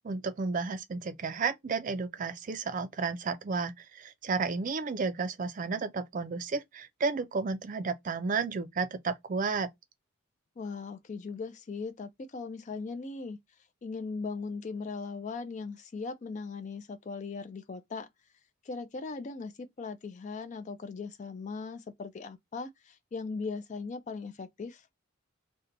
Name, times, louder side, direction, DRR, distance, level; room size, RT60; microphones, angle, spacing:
voice 1, 0.0-9.7, right 4 dB, 40° right, 0.4 m, -32 dB
voice 2, 10.6-13.4 13.8-18.1 18.6-24.9, left 4 dB, 35° left, 0.3 m, -39 dB
2.7 x 2.2 x 3.7 m
head